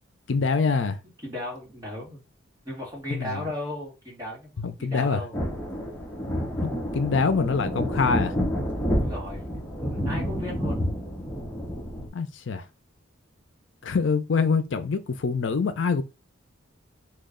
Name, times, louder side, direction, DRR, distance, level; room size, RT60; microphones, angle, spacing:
voice 1, 0.3-1.0 3.1-3.4 4.6-5.2 6.6-8.3 12.1-12.6 13.8-16.0, left 5 dB, 65° left, 0.5 m, -25 dB
voice 2, 1.2-2.2 2.6-5.4 8.9-9.5 9.8-10.8, left 1 dB, 15° right, 1.4 m, -36 dB
sound 1, 5.3-12.1, equal, 10° left, 0.7 m, -29 dB
3.1 x 2.4 x 3.7 m
head